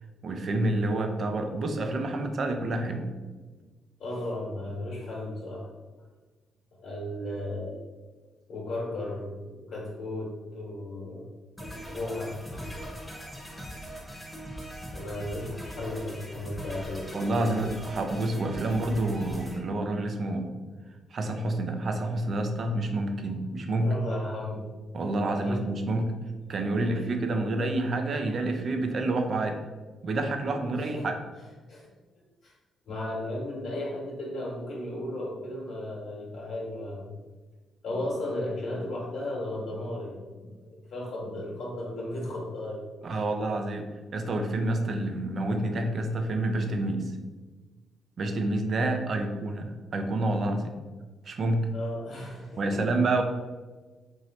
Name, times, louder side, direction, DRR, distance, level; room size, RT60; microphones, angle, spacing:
voice 1, 0.2-3.1 17.1-20.5 21.1-23.9 24.9-26.1 26.5-29.6 30.0-31.1 43.0-43.9 44.1-47.2 48.2-50.7 51.2-51.7 52.6-53.2, right 2 dB, 55° right, 5 dB, 0.6 m, -28 dB
voice 2, 4.0-5.7 6.8-7.8 8.5-11.3 11.9-12.8 13.5-13.7 14.9-17.7 23.8-24.9 25.3-25.7 26.8-27.1 30.8-31.1 31.7-31.9 32.4-32.5 32.8-37.1 37.8-42.9 43.1-43.2 51.7-52.9, left 1 dB, 70° left, -6 dB, 1.2 m, -35 dB
sound 1, 11.6-19.6, equal, 5° left, 1.0 m, -41 dB
3.1 x 2.7 x 4.1 m, 1.3 s
supercardioid pair, 65°, 0 cm